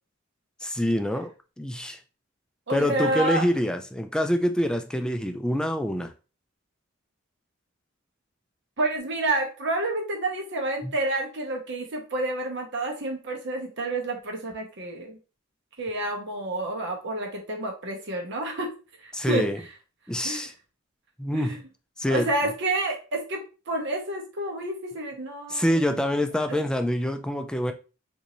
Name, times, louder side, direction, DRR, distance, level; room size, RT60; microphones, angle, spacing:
voice 1, 0.6-2.0 2.7-6.1 10.8-10.9 19.1-19.6 20.1-20.5 21.2-21.6 22.0-22.3 25.5-27.7, equal, 5° left, 0.3 m, -26 dB
voice 2, 2.7-3.5 8.8-15.2 15.8-18.7 19.0-19.5 20.2-20.5 21.3-21.6 22.1-23.4 23.7-26.1, right 2 dB, 60° right, 1.0 m, -29 dB
3.8 x 2.7 x 3.0 m
head